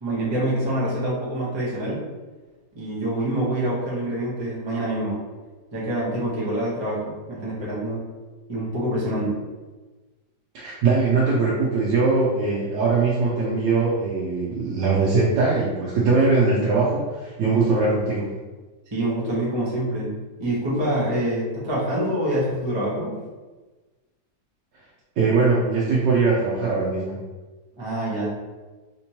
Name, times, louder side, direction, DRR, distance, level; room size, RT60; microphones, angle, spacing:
voice 1, 0.0-2.0 2.7-5.2 5.7-8.0 8.5-9.4 18.9-23.1 27.8-28.3, right 1 dB, 25° right, -7 dB, 0.6 m, -26 dB
voice 2, 10.5-18.3 25.2-27.2, right 4 dB, 80° right, -5 dB, 1.3 m, -21 dB
3.3 x 2.9 x 2.8 m, 1.3 s
omnidirectional pair, 1.9 m